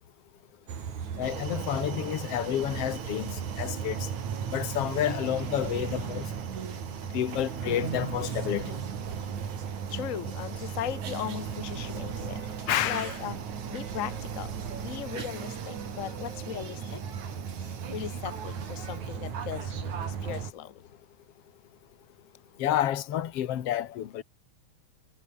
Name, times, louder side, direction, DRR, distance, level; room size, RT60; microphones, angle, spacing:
sound 1, 0.7-20.5, right 7 dB, 75° right, 4.2 m, -36 dB
voice 1, 1.2-3.3 3.6-4.0 4.5-6.2 7.1-8.6 12.7-13.1 22.6-24.2, left 11 dB, 60° left, 2.4 m, -29 dB
sound 2, 1.2-19.0, right 8 dB, 50° right, 2.3 m, -47 dB
voice 2, 9.9-13.4 13.7-17.0 17.6-20.8, left 10 dB, 85° left, 0.7 m, -38 dB
omnidirectional pair, 3.3 m